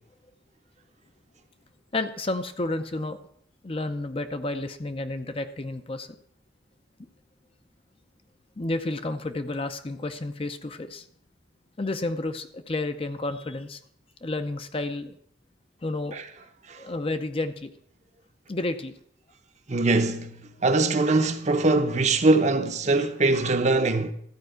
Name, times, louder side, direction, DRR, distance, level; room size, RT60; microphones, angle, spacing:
voice 1, 1.9-3.2 3.6-6.2 8.6-11.1 11.8-13.8 14.2-15.2 15.8-16.2 16.8-17.7 18.5-18.9, left 2 dB, 30° left, 0.6 m, -31 dB
voice 2, 19.7-24.1, right 2 dB, 40° right, 0.8 m, -22 dB
13.5 x 4.7 x 7.7 m
head